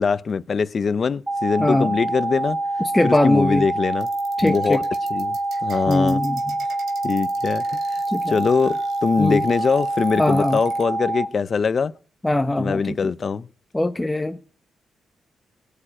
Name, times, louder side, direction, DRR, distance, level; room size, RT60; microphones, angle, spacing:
voice 1, 0.0-2.6 3.0-4.1 4.4-4.8 5.1-6.2 7.0-7.8 8.3-11.9 12.6-13.5, left 5 dB, 45° left, 0.7 m, -22 dB
sound 1, 1.3-11.3, right 2 dB, 20° right, 1.6 m, -26 dB
voice 2, 1.6-1.9 2.9-3.7 4.4-4.8 5.9-6.4 8.1-8.3 9.2-9.4 10.2-10.6 12.2-13.1 13.7-14.4, left 1 dB, 10° left, 1.0 m, -21 dB
sound 2, 4.0-10.8, right 6 dB, 75° right, 3.2 m, -46 dB
18.0 x 7.0 x 8.8 m
cardioid pair, 85°, 0 cm